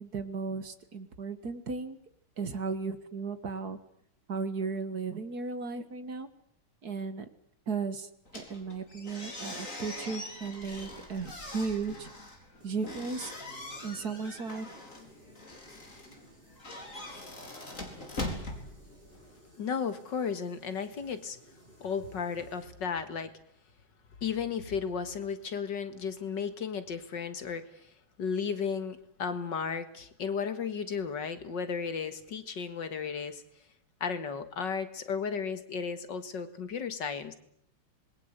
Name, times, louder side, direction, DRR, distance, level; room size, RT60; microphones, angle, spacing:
voice 1, 0.0-2.0 2.4-3.8 4.3-6.3 6.8-7.3 7.7-12.1 12.6-13.3 13.8-14.7, right 4 dB, 50° right, 12 dB, 2.0 m, -35 dB
sound 1, 8.3-19.4, left 2 dB, 40° left, 4.7 m, -42 dB
sound 2, 12.6-22.6, equal, 25° right, 4.9 m, -58 dB
voice 2, 19.6-21.4 21.8-23.3 24.2-27.7 28.2-33.4 34.0-37.3, left 6 dB, 60° left, 11 dB, 2.3 m, -34 dB
26.5 x 21.5 x 8.1 m, 0.70 s
omnidirectional pair, 2.2 m